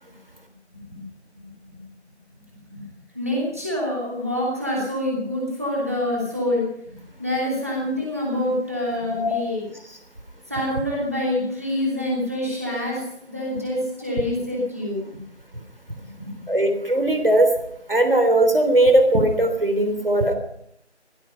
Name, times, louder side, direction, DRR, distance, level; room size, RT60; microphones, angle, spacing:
voice 1, 1.4-1.8 2.7-2.8 3.1-9.6 10.5-13.0 13.3-15.2 16.1-16.4, left 1 dB, 15° right, -4 dB, 2.9 m, -26 dB
voice 2, 16.5-17.5 17.9-20.3, right 1 dB, 50° right, 6 dB, 3.5 m, -18 dB
16.0 x 16.0 x 5.6 m, 0.71 s
figure-of-eight pair, 175°, 35 cm